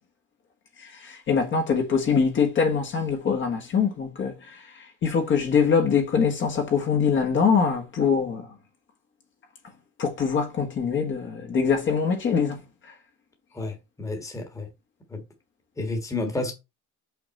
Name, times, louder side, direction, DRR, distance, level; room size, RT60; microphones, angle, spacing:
voice 1, 0.8-8.5 10.0-12.6, left 6 dB, 35° left, 1.6 m, -23 dB
voice 2, 13.5-14.7 15.1-15.2 15.8-16.5, left 2 dB, 10° left, 1.5 m, -31 dB
6.2 x 5.9 x 4.2 m
cardioid pair, 175°, 32 cm